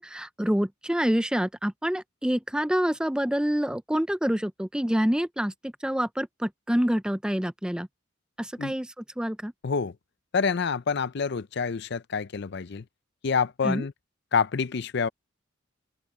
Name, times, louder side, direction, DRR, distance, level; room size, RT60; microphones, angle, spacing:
voice 1, 0.0-7.9 8.4-9.5 13.6-13.8, equal, 5° right, 0.5 m, -27 dB
voice 2, 10.3-12.8 13.2-13.9 14.3-15.1, left 5 dB, 55° left, 0.5 m, -27 dB
open air
head